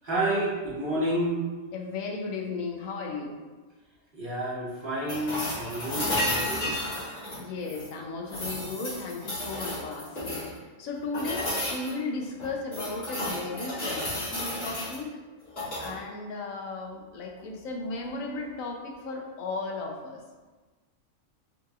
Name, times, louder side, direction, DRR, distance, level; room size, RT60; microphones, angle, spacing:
voice 1, 0.0-1.4 4.1-6.7, right 1 dB, 45° right, -6 dB, 1.0 m, -30 dB
voice 2, 1.7-3.4 7.4-15.2 15.8-20.2, left 3 dB, 80° left, 1 dB, 1.1 m, -35 dB
sound 1, 5.1-7.9 8.3-10.6 11.1-11.9 12.4-15.0 15.5-15.9 17.9-18.0, left 1 dB, 65° left, 2.1 m, -32 dB
5.6 x 3.0 x 2.3 m, 1.3 s
omnidirectional pair, 1.4 m